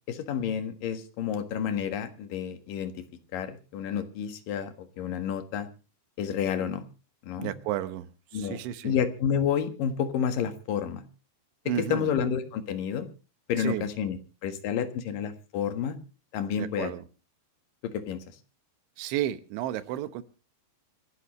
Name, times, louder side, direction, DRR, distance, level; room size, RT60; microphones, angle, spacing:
voice 1, 0.1-3.0 3.3-5.7 6.2-6.8 7.2-7.5 8.3-8.6 8.8-11.0 11.7-13.1 13.5-16.0 16.3-16.9 17.8-18.2, left 8 dB, 60° left, 8 dB, 2.7 m, -30 dB
voice 2, 7.4-9.0 11.7-12.1 13.6-13.9 16.6-17.1 19.0-20.2, right 12 dB, 85° right, 12 dB, 3.5 m, -32 dB
27.0 x 11.5 x 3.1 m, 0.34 s
omnidirectional pair, 5.2 m